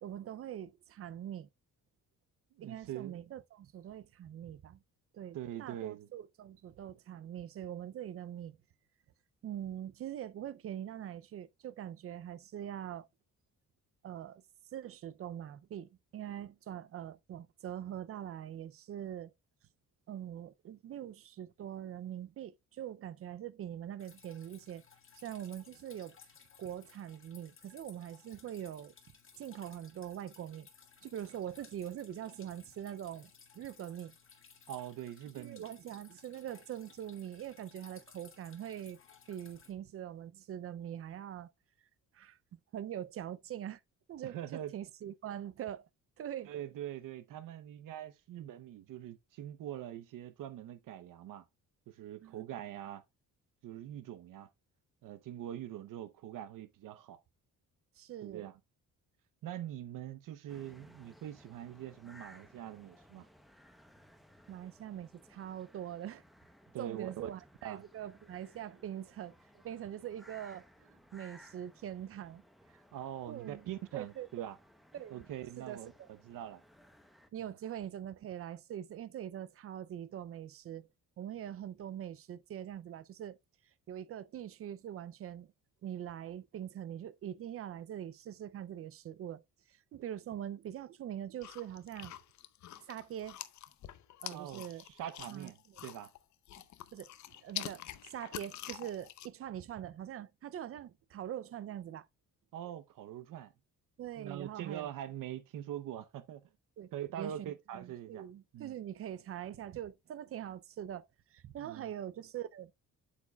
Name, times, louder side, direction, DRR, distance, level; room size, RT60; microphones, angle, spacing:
voice 1, 0.0-1.5 2.6-4.8 5.1-8.6 9.4-13.1 14.0-14.4 14.7-19.3 20.1-24.8 25.2-26.2 26.6-28.9 29.4-30.7 31.0-34.1 35.3-39.0 39.3-41.5 42.1-42.4 42.7-43.8 44.1-45.9 46.2-46.5 52.2-52.4 58.0-58.5 64.5-66.2 66.8-69.3 69.6-72.4 73.3-73.6 73.9-74.5 74.9-75.3 75.6-75.8 77.3-80.9 81.2-83.4 83.9-85.5 85.8-89.4 89.9-92.2 92.9-93.4 94.2-94.8 95.3-95.5 96.9-97.1 97.4-102.1 104.0-104.9 106.8-106.9 107.2-111.0 111.3-112.7, right 10 dB, 45° right, 0.4 m, -43 dB
voice 2, 2.5-3.3 5.3-6.1 34.7-35.7 44.2-44.7 46.4-51.4 51.9-53.0 53.6-54.5 55.0-57.2 58.2-58.6 59.4-63.3 66.7-67.3 67.6-67.8 72.9-74.6 75.1-76.6 77.4-77.5 94.3-95.6 95.8-96.1 102.5-103.5 104.2-106.4 106.9-108.3 108.5-108.7 111.6-111.9, right 11 dB, 75° right, 0.7 m, -43 dB
Drip, 24.0-39.7, left 6 dB, 40° left, 1.9 m, -60 dB
sound 1, 60.5-77.3, equal, ahead, 0.7 m, -61 dB
sound 2, 91.4-96.2 96.5-99.3, left 12 dB, 60° left, 0.7 m, -46 dB
8.3 x 7.2 x 2.2 m
cardioid pair, 160°, 33 cm